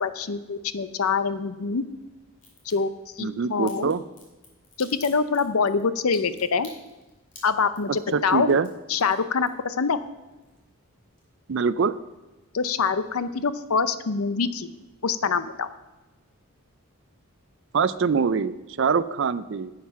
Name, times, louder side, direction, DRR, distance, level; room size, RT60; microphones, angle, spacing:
voice 1, 0.0-1.8 2.7-2.9 3.2-3.9 4.8-6.7 7.4-8.5 8.9-10.0 12.5-14.7 15.0-15.7, left 5 dB, 75° left, 13 dB, 0.6 m, -25 dB
Crack, 2.4-2.7 3.7-9.9 10.2-10.9 11.2-11.3, left 3 dB, 35° left, 2.4 m, -49 dB
voice 2, 3.2-4.0 8.1-8.7 11.5-11.9 17.7-19.7, right 5 dB, 55° right, 15 dB, 0.4 m, -24 dB
10.5 x 7.4 x 5.7 m, 1.1 s
head